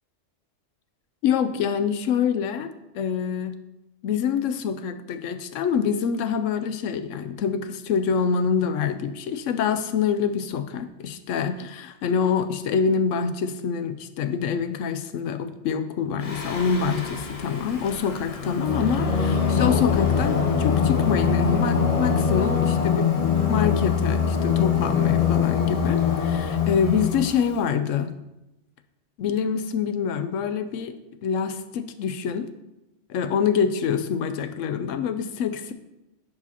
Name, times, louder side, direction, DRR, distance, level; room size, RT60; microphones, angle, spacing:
voice 1, 1.2-3.5 4.0-23.1 23.5-28.1 29.2-30.9 31.2-32.5 33.1-35.7, left 7 dB, 85° left, 10 dB, 0.9 m, -26 dB
Singing, 16.2-27.5, left 6 dB, 40° left, 0.6 m, -23 dB
10.5 x 4.9 x 2.8 m, 0.97 s
omnidirectional pair, 1.3 m